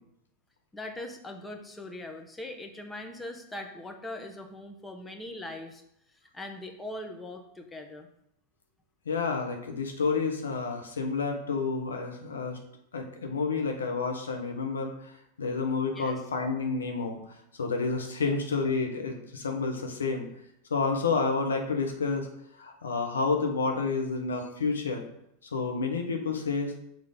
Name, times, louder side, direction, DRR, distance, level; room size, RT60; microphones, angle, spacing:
voice 1, 0.7-5.8 6.3-8.1 16.0-16.2, left 1 dB, 10° left, 4 dB, 1.0 m, -41 dB
voice 2, 9.1-12.6 12.9-15.1 15.4-17.2 17.6-20.3 20.7-22.3 22.6-25.1 25.5-26.7, left 4 dB, 90° left, 3 dB, 1.0 m, -29 dB
5.9 x 3.6 x 5.1 m, 0.77 s
hypercardioid pair, 95°, 0 cm